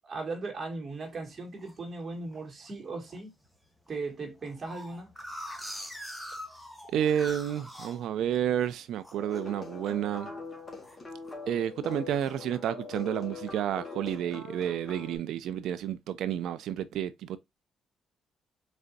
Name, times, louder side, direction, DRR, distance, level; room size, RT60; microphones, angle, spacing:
voice 1, 0.0-3.3 3.9-5.1, right 3 dB, 40° right, 2.0 m, -37 dB
sound 1, 1.0-1.8 2.3-2.7 3.1-3.2 3.4-3.5 3.9-8.7 9.0-9.4 9.8-10.1 10.4-11.4 11.8-12.3, equal, ahead, 1.1 m, -43 dB
voice 2, 6.9-10.3 11.5-17.4, right 10 dB, 80° right, 0.3 m, -30 dB
sound 2, 9.1-15.2, left 4 dB, 25° left, 1.5 m, -42 dB
4.0 x 3.3 x 2.5 m
cardioid pair, 90°, 0 cm